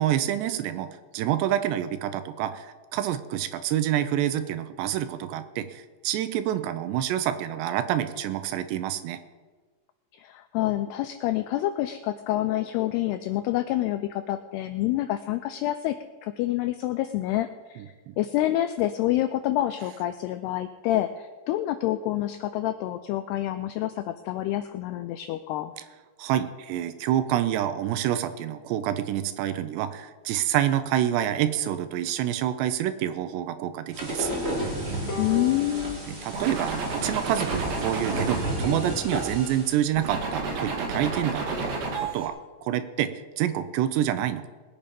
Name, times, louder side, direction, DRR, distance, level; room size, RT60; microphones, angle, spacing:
voice 1, 0.0-9.2 17.8-18.1 26.2-34.3 36.1-41.7 42.1-42.3 42.6-44.4, right 11 dB, 80° right, 11 dB, 2.7 m, -27 dB
voice 2, 10.2-16.0 16.2-17.8 18.2-25.7 35.2-36.0, left 14 dB, 90° left, 10 dB, 2.3 m, -27 dB
sound 1, 33.9-39.8, right 1 dB, 25° right, 1.4 m, -32 dB
Bowed string instrument, 35.1-38.4, left 1 dB, 45° left, 2.8 m, -40 dB
sound 2, 36.3-39.5 40.0-42.3, right 3 dB, 60° right, 3.7 m, -31 dB
20.5 x 8.6 x 5.2 m, 1.4 s
omnidirectional pair, 5.3 m